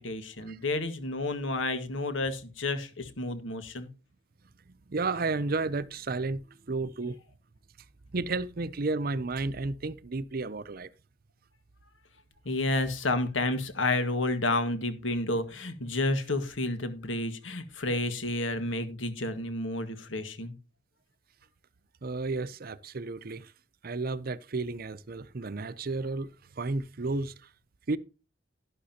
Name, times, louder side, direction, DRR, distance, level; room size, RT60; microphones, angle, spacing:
voice 1, 0.0-3.9 12.5-20.5, left 2 dB, 90° left, 1.8 m, -30 dB
voice 2, 4.9-6.4 6.7-7.2 8.1-10.9 22.0-23.5 23.8-26.3 26.6-27.3 27.9-28.0, right 3 dB, 50° right, 0.6 m, -32 dB
11.5 x 11.0 x 2.8 m
head